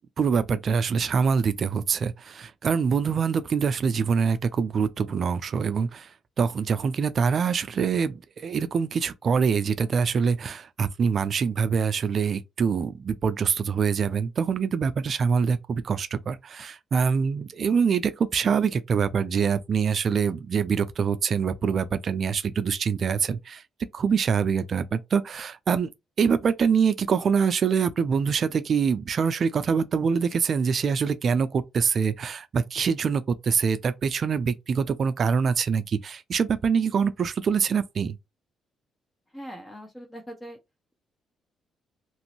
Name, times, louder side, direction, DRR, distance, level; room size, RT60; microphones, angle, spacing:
voice 1, 0.2-23.6 23.9-25.9 26.2-38.2, right 6 dB, 50° right, 0.4 m, -25 dB
voice 2, 39.3-40.6, equal, 15° left, 0.8 m, -41 dB
3.0 x 2.6 x 2.9 m
cardioid pair, 90°, 0 cm